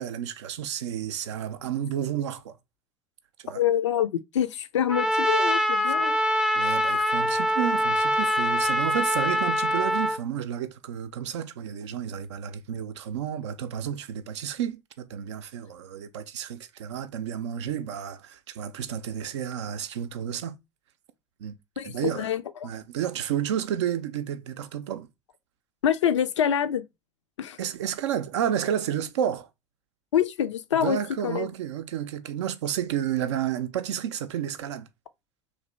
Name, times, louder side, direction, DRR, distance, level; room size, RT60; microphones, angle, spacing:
voice 1, 0.0-2.6 3.4-3.6 5.9-6.0 6.5-20.6 21.4-21.6 21.8-22.3 22.6-25.1 27.6-29.5 30.8-34.9, right 9 dB, 70° right, 0.4 m, -31 dB
voice 2, 3.5-6.2 21.8-22.7 25.8-26.8 27.4-27.6 30.1-31.0 31.2-31.5, left 9 dB, 75° left, 0.4 m, -26 dB
Trumpet, 4.9-10.2, equal, 5° right, 0.4 m, -24 dB
3.1 x 2.6 x 2.9 m
figure-of-eight pair, 60°, 15 cm